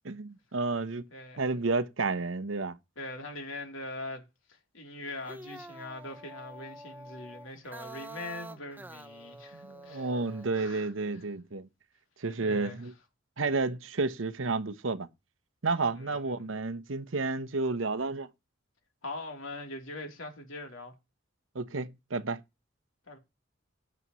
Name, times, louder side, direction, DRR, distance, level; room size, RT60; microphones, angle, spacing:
voice 1, 0.1-1.0 1.4-2.8 9.5-11.7 12.2-12.9 13.4-15.1 15.6-18.3 21.5-22.4, right 3 dB, 75° right, 0.9 m, -31 dB
voice 2, 1.1-1.5 3.0-10.1 10.5-11.2 12.4-12.9 15.9-16.5 19.0-21.0 23.1-23.2, left 2 dB, 80° left, 3.2 m, -42 dB
sound 1, 5.1-10.6, right 1 dB, 10° right, 0.7 m, -47 dB
17.5 x 6.9 x 3.1 m
head